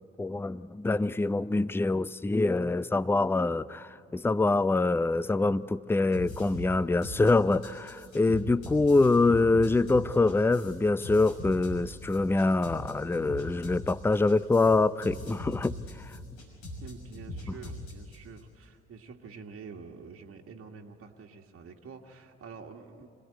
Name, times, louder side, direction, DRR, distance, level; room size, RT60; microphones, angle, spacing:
voice 1, 0.2-15.8, left 3 dB, 5° left, 18 dB, 0.5 m, -25 dB
sound 1, 6.1-18.4, left 1 dB, 70° left, 6.1 m, -40 dB
voice 2, 16.8-23.1, right 5 dB, 45° right, 2 dB, 1.8 m, -47 dB
26.0 x 17.5 x 9.7 m, 2.4 s
figure-of-eight pair, 50°, 32 cm